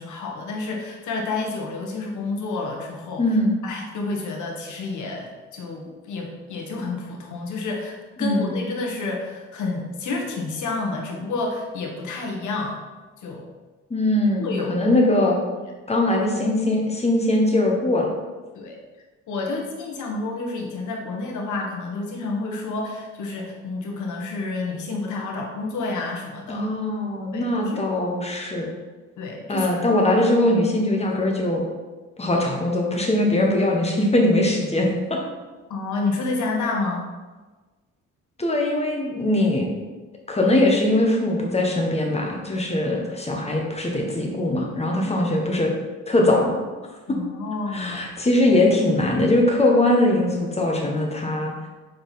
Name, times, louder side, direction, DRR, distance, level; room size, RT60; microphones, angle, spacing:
voice 1, 0.0-3.2 3.6-12.8 13.2-13.5 14.4-14.7 18.5-18.8 19.3-26.7 27.3-27.8 29.2-29.7 35.7-37.1 46.2-46.3 47.1-48.0, left 3 dB, 75° left, 0 dB, 1.5 m, -29 dB
voice 2, 3.2-3.5 8.2-8.6 13.9-15.4 15.9-18.1 26.5-28.7 29.5-31.6 32.2-35.2 38.4-39.7 40.3-45.7 46.1-46.5 47.1-47.2 47.7-51.5, left 1 dB, 20° left, 0 dB, 1.5 m, -21 dB
6.2 x 4.6 x 4.2 m, 1.3 s
cardioid pair, 90°, 30 cm